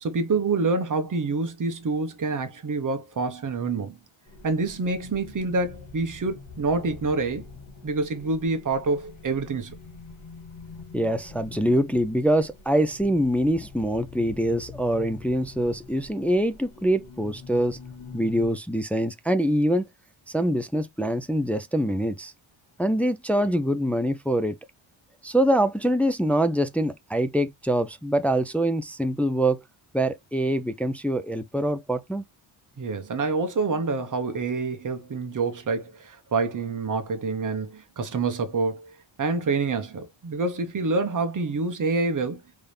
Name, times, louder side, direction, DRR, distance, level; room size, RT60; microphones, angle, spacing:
voice 1, 0.0-4.0 4.4-7.4 7.8-9.7 32.8-38.9 39.2-42.4, right 3 dB, 40° right, 1.0 m, -27 dB
sound 1, 4.3-18.5, left 4 dB, 75° left, 2.2 m, -45 dB
voice 2, 10.9-17.8 18.1-19.9 20.3-22.3 22.8-24.6 25.2-29.6 29.9-32.2, right 1 dB, 5° left, 0.4 m, -24 dB
4.1 x 3.5 x 3.2 m
wide cardioid pair, 125°, 48 cm